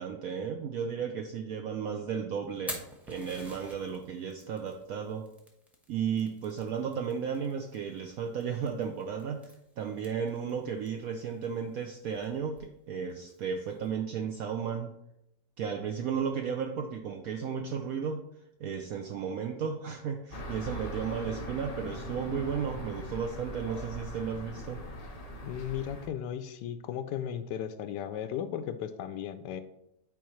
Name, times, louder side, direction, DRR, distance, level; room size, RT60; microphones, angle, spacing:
voice 1, 0.0-5.3 5.9-14.9 15.6-18.2 18.6-24.8, right 7 dB, 70° right, 3 dB, 0.9 m, -34 dB
Fire, 2.5-13.9, left 1 dB, ahead, 0.7 m, -50 dB
sound 1, 20.3-26.1, equal, 40° left, 0.5 m, -41 dB
voice 2, 25.4-29.6, left 9 dB, 80° left, 10 dB, 1.2 m, -36 dB
9.2 x 4.6 x 3.1 m, 0.82 s
omnidirectional pair, 1.9 m